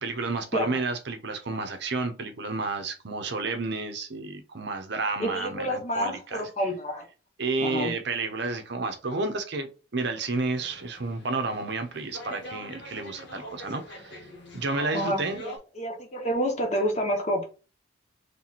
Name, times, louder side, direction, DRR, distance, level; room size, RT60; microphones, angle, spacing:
voice 1, 0.0-6.5 7.4-14.3 14.5-15.4, right 3 dB, 55° right, 0.7 m, -31 dB
voice 2, 5.2-7.0 7.6-7.9 14.9-17.4, equal, 35° left, 1.0 m, -29 dB
sound 1, 10.3-15.6, left 1 dB, 55° left, 1.2 m, -43 dB
3.3 x 3.0 x 4.1 m
head